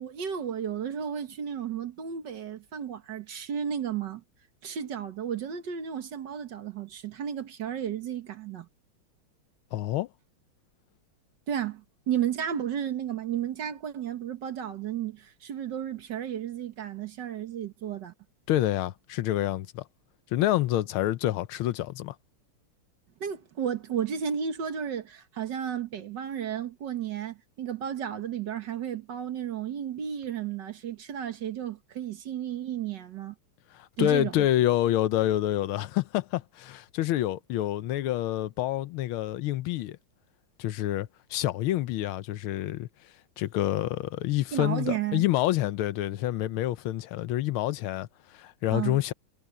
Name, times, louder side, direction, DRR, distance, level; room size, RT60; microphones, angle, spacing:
voice 1, 0.0-4.2 4.6-8.7 11.5-18.1 23.2-33.4 34.0-34.5 44.5-45.2 48.7-49.0, right 9 dB, 55° right, 1.9 m, -33 dB
voice 2, 9.7-10.1 18.5-19.8 20.3-22.1 33.7-40.0 40.6-42.9 43.4-49.1, left 14 dB, 80° left, 1.5 m, -27 dB
omnidirectional pair, 2.4 m